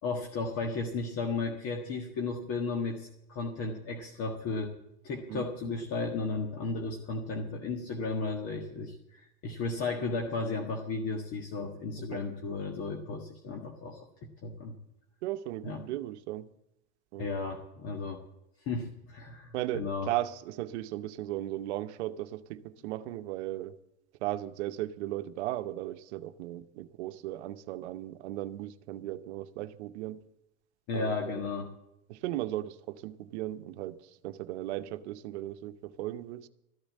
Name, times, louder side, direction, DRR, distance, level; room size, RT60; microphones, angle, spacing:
voice 1, 0.0-4.8 5.0-14.7 15.6-15.8 17.2-18.2 18.6-20.1 30.9-31.7, left 3 dB, 45° left, 1.6 m, -34 dB
voice 2, 5.3-5.8 12.0-12.2 15.2-16.5 17.1-17.5 19.5-23.8 24.2-30.3 30.9-31.6 32.1-36.5, right 14 dB, 80° right, 0.8 m, -37 dB
13.5 x 8.7 x 7.5 m
supercardioid pair, 130°, 34 cm